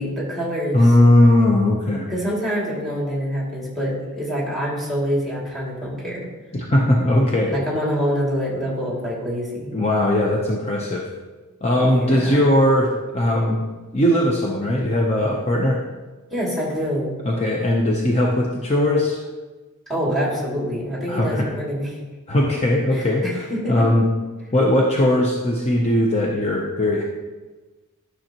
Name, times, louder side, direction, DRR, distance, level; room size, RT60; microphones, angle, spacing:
voice 1, 0.0-0.8 2.1-6.3 7.5-9.7 11.8-12.4 16.3-17.1 19.9-21.9 22.9-23.8, equal, ahead, -5 dB, 2.4 m, -26 dB
voice 2, 0.7-2.1 6.5-7.5 9.7-11.0 11.6-13.6 13.9-15.8 17.2-19.2 21.1-21.5 22.3-24.1 24.5-27.0, left 1 dB, 30° left, -2 dB, 0.8 m, -19 dB
11.5 x 6.4 x 2.9 m, 1.3 s
head